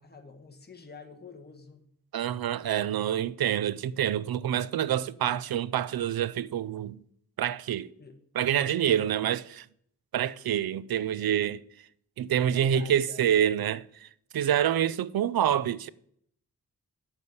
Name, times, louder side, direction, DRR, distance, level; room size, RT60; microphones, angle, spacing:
voice 1, 0.0-1.9 8.0-8.2 8.6-9.1 12.4-13.2, left 3 dB, 30° left, 1.2 m, -47 dB
voice 2, 2.1-7.0 7.4-7.9 8.3-9.7 10.1-11.6 12.2-14.1 14.3-15.9, right 10 dB, 85° right, 0.5 m, -27 dB
8.1 x 7.0 x 5.4 m
wide cardioid pair, 95°, 35 cm